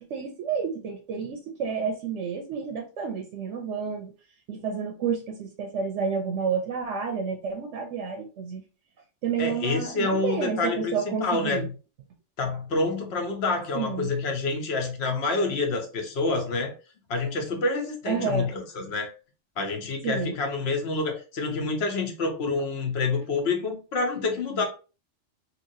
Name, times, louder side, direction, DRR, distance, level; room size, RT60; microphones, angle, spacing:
voice 1, 0.1-4.1 4.5-8.6 9.2-11.7 13.7-14.1 18.1-18.5 20.0-20.3, right 6 dB, 75° right, 4 dB, 0.9 m, -30 dB
voice 2, 9.4-11.7 12.4-16.7 17.1-19.1 19.6-24.6, left 3 dB, 60° left, 3 dB, 0.9 m, -27 dB
2.9 x 2.8 x 2.6 m, 0.34 s
omnidirectional pair, 1.3 m